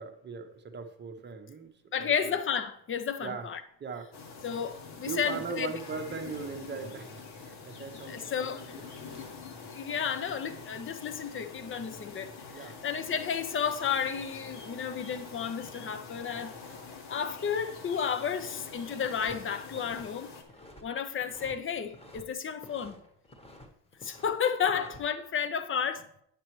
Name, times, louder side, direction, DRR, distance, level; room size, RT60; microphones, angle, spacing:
voice 1, 0.0-2.3 3.2-3.5 3.8-4.1 5.0-8.6 12.5-12.8 24.7-24.9, right 5 dB, 25° right, 0.8 m, -40 dB
voice 2, 1.9-3.6 4.4-5.8 8.1-8.8 9.7-16.5 17.1-20.3 20.8-23.0 24.0-26.2, left 7 dB, 30° left, 0.6 m, -32 dB
sound 1, 4.1-20.4, left 4 dB, 70° left, 1.4 m, -45 dB
sound 2, 19.0-19.4 19.6-20.8 21.2-22.2 22.5-23.7 23.9-25.0, left 1 dB, 15° left, 1.2 m, -51 dB
9.0 x 6.8 x 3.1 m
cardioid pair, 110°, 42 cm